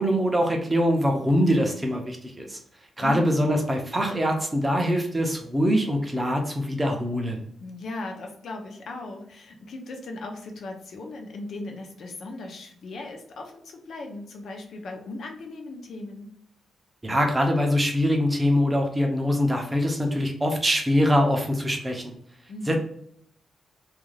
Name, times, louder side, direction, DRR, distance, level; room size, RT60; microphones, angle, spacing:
voice 1, 0.0-2.6 3.0-7.4 17.0-22.1 22.7-22.8, equal, 10° right, 2 dB, 0.5 m, -23 dB
voice 2, 3.0-3.6 7.6-16.3 22.5-22.8, left 2 dB, 55° left, 3 dB, 0.5 m, -37 dB
2.4 x 2.3 x 3.1 m, 0.66 s
wide cardioid pair, 175°, 0 cm